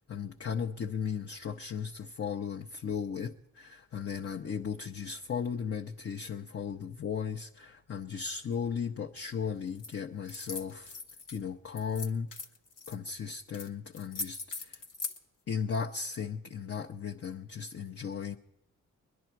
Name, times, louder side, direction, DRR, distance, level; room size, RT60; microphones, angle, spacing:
voice 1, 0.1-11.0 11.3-12.3 12.9-14.8 15.5-18.4, left 6 dB, 45° left, 1 dB, 0.7 m, -36 dB
sound 1, 9.8-9.9 10.3-11.4 11.8-13.0 13.5-13.7 13.9-15.2, left 3 dB, 70° left, 1.1 m, -40 dB
22.0 x 10.5 x 4.5 m, 0.88 s
cardioid pair, 65°, 33 cm